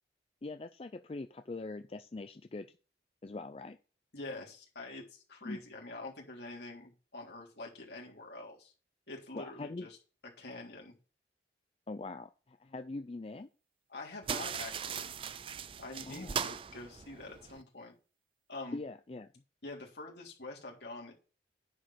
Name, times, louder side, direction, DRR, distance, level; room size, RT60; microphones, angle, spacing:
voice 1, 0.4-2.7 3.2-3.8 5.4-5.6 9.3-9.9 11.9-13.5 16.1-16.4 18.7-19.3, left 3 dB, 35° left, 9 dB, 0.4 m, -42 dB
voice 2, 4.1-8.7 9.1-10.0 10.4-10.9 13.9-15.2 15.8-17.9 18.5-18.8 19.6-21.1, left 2 dB, 70° left, -1 dB, 3.5 m, -46 dB
sound 1, 14.2-17.6, right 7 dB, 30° right, 0.4 m, -39 dB
9.9 x 5.2 x 5.7 m, 0.35 s
head